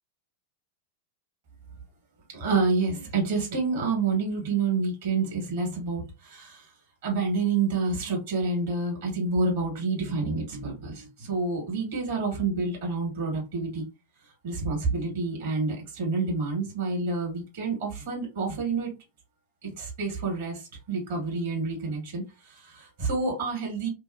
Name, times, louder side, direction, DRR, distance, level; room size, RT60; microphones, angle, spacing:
voice 1, 2.3-6.7 7.0-13.9 14.4-18.9 19.6-23.9, right 4 dB, 55° right, -1 dB, 1.6 m, -28 dB
2.7 x 2.2 x 2.6 m, 0.28 s
figure-of-eight pair, 90°, 0 cm